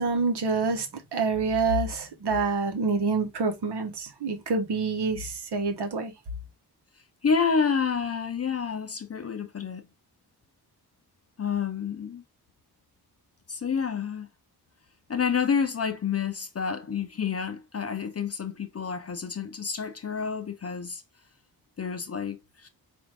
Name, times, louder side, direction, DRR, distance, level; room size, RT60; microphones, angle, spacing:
voice 1, 0.0-6.1, right 4 dB, 80° right, 1.0 m, -27 dB
voice 2, 7.2-9.9 11.4-12.2 13.5-14.3 15.1-21.0 21.8-22.7, left 6 dB, 40° left, 0.5 m, -29 dB
4.3 x 2.5 x 3.2 m
wide cardioid pair, 135°, 39 cm